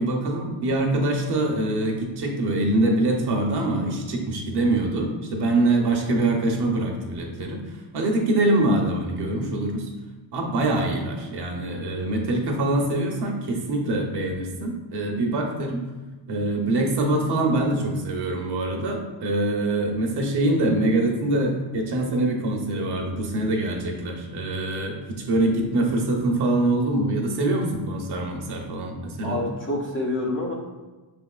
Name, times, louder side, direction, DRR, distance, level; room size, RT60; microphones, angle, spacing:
voice 1, 0.0-9.9 10.3-15.8 16.3-29.5, right 2 dB, 50° right, 1 dB, 0.9 m, -24 dB
voice 2, 29.2-30.5, left 2 dB, 25° left, -2 dB, 0.5 m, -27 dB
6.2 x 3.5 x 2.4 m, 1.2 s
cardioid pair, 150°, 50 cm